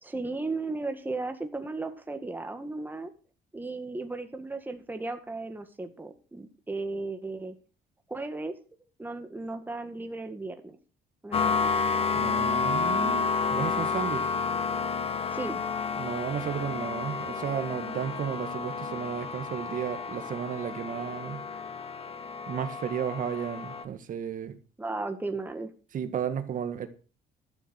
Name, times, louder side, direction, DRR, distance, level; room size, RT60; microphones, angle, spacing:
voice 1, 0.0-3.1 3.5-7.5 8.1-8.5 9.0-10.8 11.2-11.7 15.3-15.6 24.8-25.7, right 3 dB, 10° right, 1.9 m, -35 dB
sound 1, 11.3-23.8, left 5 dB, 35° left, 1.3 m, -30 dB
voice 2, 12.1-14.3 15.9-21.4 22.5-24.6 25.9-26.9, right 8 dB, 50° right, 1.8 m, -33 dB
13.0 x 7.0 x 6.5 m
cardioid pair, 110°, 17 cm